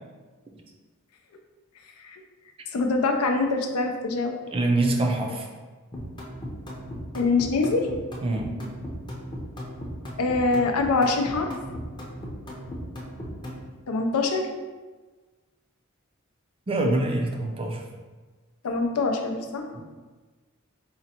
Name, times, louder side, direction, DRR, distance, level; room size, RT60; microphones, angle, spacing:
voice 1, 2.7-4.4 7.1-7.9 10.2-11.5 13.9-14.5 18.6-19.7, left 3 dB, 85° left, 4 dB, 0.5 m, -24 dB
voice 2, 4.5-5.5 8.2-8.6 16.7-17.8 19.7-19.9, right 2 dB, 25° right, 2 dB, 0.4 m, -25 dB
sound 1, 5.9-13.7, equal, 20° left, 0.6 m, -37 dB
3.9 x 2.1 x 4.2 m, 1.3 s
head